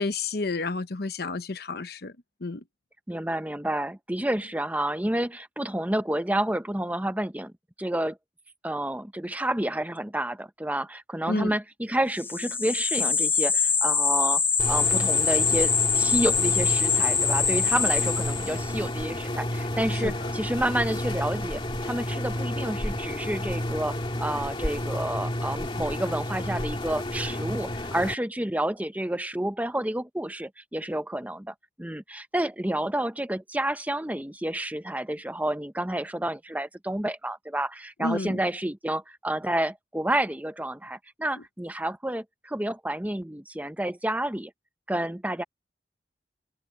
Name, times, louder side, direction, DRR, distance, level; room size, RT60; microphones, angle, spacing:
voice 1, 0.0-2.2 2.4-2.6 11.3-11.5 19.9-20.3 38.0-38.4, left 3 dB, 60° left, 1.0 m, -30 dB
voice 2, 3.1-7.5 7.8-8.2 8.6-14.4 14.7-44.5 44.9-45.4, right 1 dB, 10° right, 0.9 m, -30 dB
sound 1, 12.2-18.7, left 5 dB, 10° left, 0.3 m, -24 dB
sound 2, 14.6-28.1, left 1 dB, 30° left, 2.3 m, -31 dB
head